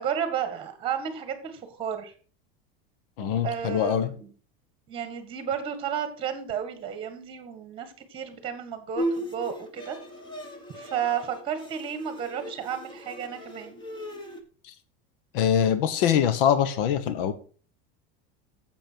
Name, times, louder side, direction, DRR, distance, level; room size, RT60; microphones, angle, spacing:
voice 1, 0.0-2.1 3.4-4.3 4.9-10.0 10.7-13.8, right 8 dB, 20° right, 9 dB, 1.7 m, -32 dB
voice 2, 3.2-4.1 14.6-14.7 15.3-17.3, left 9 dB, 70° left, 12 dB, 1.2 m, -23 dB
Bowed string instrument, 9.0-14.4, equal, 15° left, 1.3 m, -36 dB
10.5 x 7.6 x 4.6 m, 0.40 s
cardioid pair, 180°, 29 cm